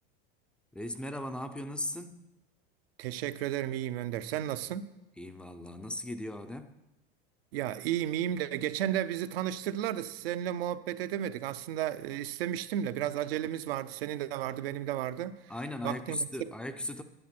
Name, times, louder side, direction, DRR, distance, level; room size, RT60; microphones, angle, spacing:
voice 1, 0.7-2.3 5.2-6.7 15.5-17.0, left 1 dB, 5° left, 0.3 m, -37 dB
voice 2, 3.0-4.9 7.5-15.4 15.8-16.3, right 11 dB, 90° right, 0.7 m, -33 dB
10.0 x 9.3 x 6.0 m
supercardioid pair, 150°, 29 cm